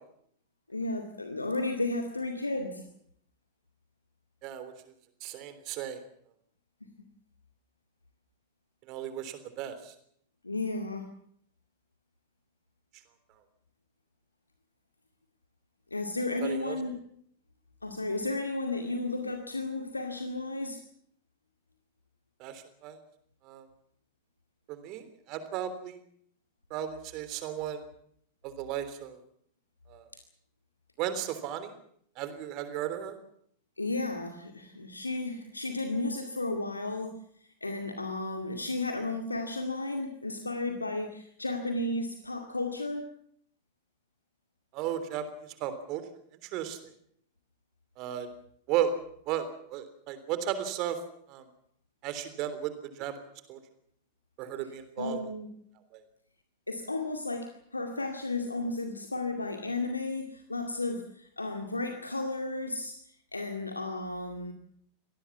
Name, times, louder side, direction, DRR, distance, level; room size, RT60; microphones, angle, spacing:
voice 1, 0.7-2.8 10.4-11.1 15.9-17.0 17.8-20.8 33.8-37.2 37.6-43.1 55.0-55.5 56.7-63.0 63.3-64.5, left 2 dB, 80° left, 4 dB, 2.2 m, -33 dB
voice 2, 4.4-4.7 5.2-6.0 8.9-9.9 16.4-16.8 22.4-23.0 23.4-23.7 24.7-26.0 26.7-27.8 28.4-29.2 29.9-30.1 31.0-31.7 32.1-33.2 44.7-45.3 45.6-46.0 46.4-46.9 48.0-48.3 48.7-49.0 49.2-51.0 51.3-51.4 52.0-53.1 53.5-53.6 54.4-55.2 55.9-56.0, right 10 dB, 40° right, 11 dB, 3.4 m, -34 dB
25.5 x 18.5 x 7.2 m, 0.66 s
figure-of-eight pair, 90°, 0 cm